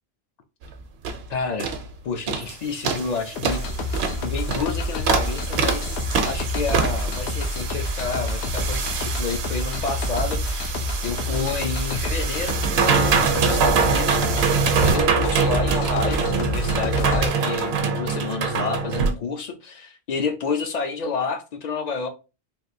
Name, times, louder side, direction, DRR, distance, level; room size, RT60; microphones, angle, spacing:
sound 1, 0.6-0.7 1.0-1.2 1.6-1.8 2.3-2.5 2.8-19.1, right 5 dB, 80° right, 0.8 m, -24 dB
voice 1, 1.3-1.7 2.0-3.6 4.2-10.8 11.0-14.5 14.8-22.1, left 4 dB, 55° left, 0.5 m, -29 dB
sound 2, 3.4-17.3, left 1 dB, 85° left, 0.8 m, -28 dB
3.4 x 2.4 x 2.6 m
omnidirectional pair, 1.1 m